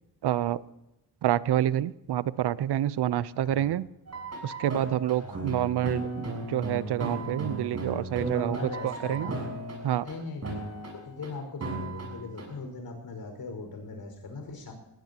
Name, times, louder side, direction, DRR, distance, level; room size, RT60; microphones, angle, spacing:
voice 1, 0.2-0.6 1.2-3.9 4.4-9.3 9.8-10.1, right 12 dB, 75° right, 18 dB, 0.7 m, -28 dB
voice 2, 3.4-3.8 5.2-5.6 8.3-9.5 10.0-10.7 10.9-14.7, left 3 dB, 60° left, 4 dB, 5.1 m, -40 dB
sound 1, 4.1-10.1 10.4-11.3 11.6-12.4, right 2 dB, 40° right, 6.8 m, -35 dB
20.0 x 17.5 x 2.9 m, 0.93 s
cardioid pair, 105°, 40 cm